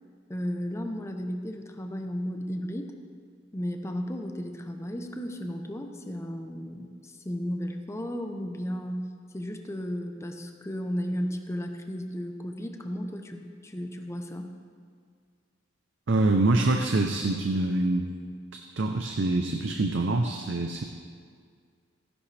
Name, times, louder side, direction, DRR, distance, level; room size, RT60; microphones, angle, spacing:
voice 1, 0.3-2.9 3.5-9.1 9.3-14.5, equal, 15° left, 4 dB, 0.7 m, -34 dB
voice 2, 16.1-18.1 18.5-20.8, right 2 dB, 65° right, 4 dB, 0.6 m, -25 dB
14.5 x 11.0 x 3.3 m, 2.1 s
head